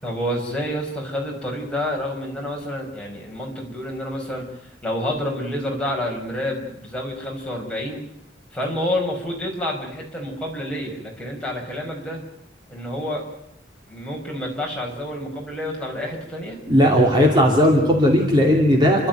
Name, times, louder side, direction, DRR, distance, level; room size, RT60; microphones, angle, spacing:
voice 1, 0.0-4.5 4.8-8.0 8.5-12.2 12.7-13.2 13.9-16.6, left 1 dB, 5° left, -2 dB, 5.2 m, -28 dB
voice 2, 16.7-19.1, equal, 25° right, 0 dB, 2.8 m, -16 dB
30.0 x 12.5 x 9.2 m, 0.76 s
head